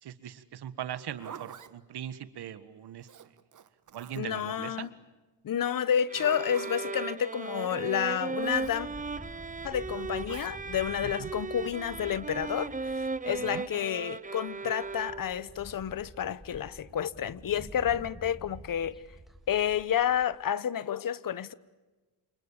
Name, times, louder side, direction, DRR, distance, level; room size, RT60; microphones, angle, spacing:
voice 1, 0.0-3.1 3.9-4.9 11.0-11.3 13.2-13.7, right 10 dB, 65° right, 1.7 m, -40 dB
Zipper (clothing), 0.9-1.7 3.0-4.4 5.8-6.9 8.4-8.8 10.3-10.5, right 8 dB, 45° right, 1.5 m, -47 dB
voice 2, 4.2-4.9 5.4-8.9 9.6-19.0 19.5-21.5, left 9 dB, 50° left, 1.1 m, -30 dB
sound 1, 6.1-15.5, right 4 dB, 20° right, 0.8 m, -37 dB
sound 2, 8.4-13.9 14.5-14.6 14.8-20.3, right 1 dB, ahead, 3.2 m, -49 dB
28.5 x 28.5 x 7.3 m
cardioid pair, 120°, 42 cm